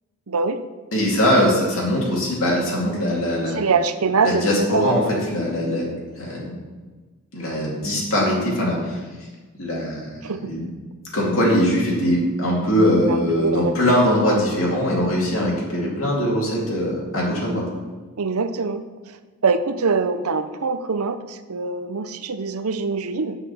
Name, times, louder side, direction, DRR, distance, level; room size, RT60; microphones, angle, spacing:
voice 1, 0.3-0.6 3.5-5.1 10.2-10.5 13.1-13.7 14.3-14.4 18.2-18.8 19.4-23.4, right 4 dB, 80° right, 10 dB, 0.7 m, -23 dB
voice 2, 0.9-3.6 4.2-5.9 6.2-6.6 7.3-9.0 9.6-10.6 11.1-17.6, equal, 65° left, -4 dB, 2.5 m, -21 dB
8.1 x 5.7 x 7.0 m, 1.3 s
head